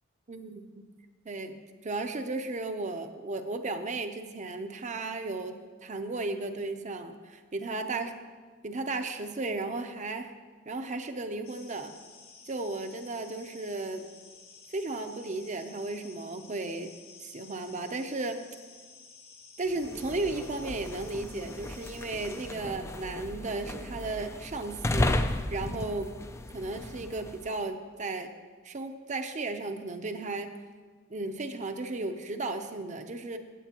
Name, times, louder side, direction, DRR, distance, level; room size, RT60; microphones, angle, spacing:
voice 1, 0.3-0.9 1.2-1.6 1.8-5.5 5.8-8.1 8.6-10.3 10.7-11.9 12.5-14.0 14.7-16.9 17.2-18.4 19.6-25.2 25.5-26.1 26.5-28.3 28.6-30.5 31.1-33.4, right 2 dB, 35° right, 7 dB, 0.6 m, -34 dB
sound 1, 11.4-22.5, left 5 dB, 70° left, 1.6 m, -53 dB
sound 2, 19.7-27.5, left 1 dB, 15° left, 0.3 m, -34 dB
16.5 x 7.7 x 2.9 m, 1.5 s
head